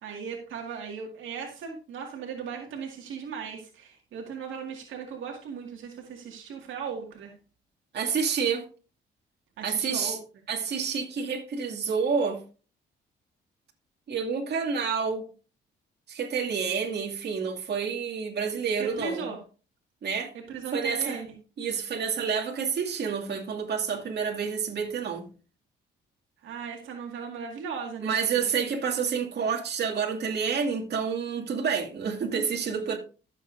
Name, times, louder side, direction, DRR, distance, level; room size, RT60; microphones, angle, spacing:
voice 1, 0.0-7.3 9.6-10.2 18.8-19.4 20.5-21.3 26.4-28.4, right 6 dB, 80° right, 2.1 m, -37 dB
voice 2, 7.9-8.6 9.6-10.2 10.5-12.4 14.1-15.3 16.1-19.3 20.0-20.3 20.7-21.2 21.6-25.3 28.0-33.0, right 6 dB, 55° right, 2.4 m, -29 dB
15.0 x 7.3 x 2.6 m
cardioid pair, 90°, 20 cm